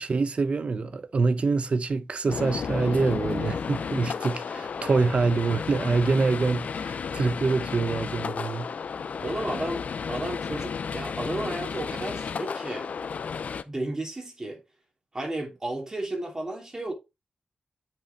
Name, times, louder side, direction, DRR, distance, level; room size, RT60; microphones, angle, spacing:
voice 1, 0.0-8.7, right 4 dB, 50° right, 0.8 m, -25 dB
sound 1, 2.3-13.6, left 6 dB, 70° left, 0.6 m, -33 dB
voice 2, 9.2-12.9 13.7-14.6 15.1-16.9, right 1 dB, 25° right, 2.8 m, -33 dB
9.1 x 5.2 x 3.4 m
wide cardioid pair, 115°, 3 cm